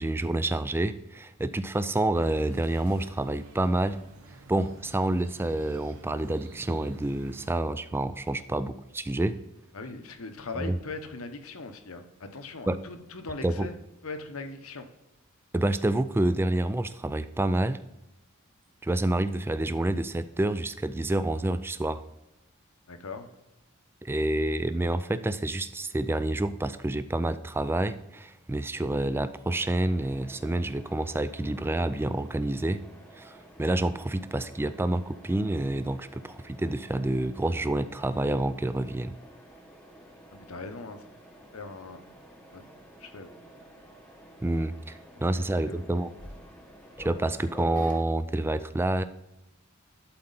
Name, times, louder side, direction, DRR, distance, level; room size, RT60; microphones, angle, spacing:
voice 1, 0.0-4.0 4.5-9.4 10.6-10.8 12.7-12.8 13.4-13.7 15.5-17.8 18.8-22.0 24.0-32.8 33.2-39.1 44.4-46.1 47.0-49.0, right 1 dB, 10° right, 12 dB, 0.3 m, -28 dB
sound 1, 2.1-7.6, right 2 dB, 70° right, 1.0 m, -51 dB
voice 2, 9.7-13.8 14.0-14.8 22.9-23.3 40.3-41.0 41.5-42.0 42.5-42.6 43.0-43.3 45.3-45.8, left 3 dB, 75° left, 7 dB, 0.9 m, -40 dB
Mechanisms, 29.5-48.0, equal, 5° left, 1.0 m, -49 dB
11.5 x 4.3 x 3.9 m, 0.94 s
head